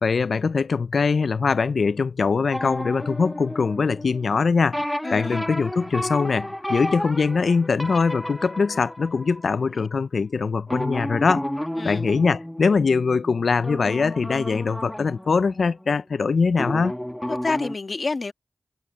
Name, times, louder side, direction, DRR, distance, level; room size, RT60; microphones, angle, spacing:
voice 1, 0.0-4.8 5.1-11.5 11.8-16.9, left 5 dB, 85° left, 0.4 m, -22 dB
sound 1, 2.5-4.4 4.7-9.9 10.7-16.2 16.5-17.8, equal, 10° left, 1.2 m, -32 dB
voice 2, 5.0-5.4 9.7-9.9 11.8-12.0 17.3-18.3, left 3 dB, 60° left, 1.4 m, -28 dB
wide cardioid pair, 60°, 0 cm